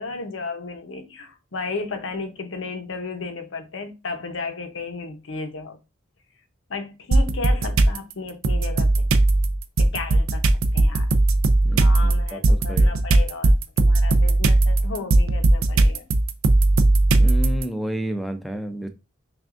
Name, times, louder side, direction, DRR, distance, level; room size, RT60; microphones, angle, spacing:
voice 1, 0.0-5.8 6.7-9.1 9.8-11.1 11.8-16.1, left 4 dB, 70° left, 0.7 m, -34 dB
sound 1, 7.1-8.0 8.4-17.6, right 2 dB, 85° right, 0.4 m, -18 dB
voice 2, 11.6-13.0 17.1-18.9, equal, ahead, 0.4 m, -31 dB
5.8 x 2.4 x 2.5 m
head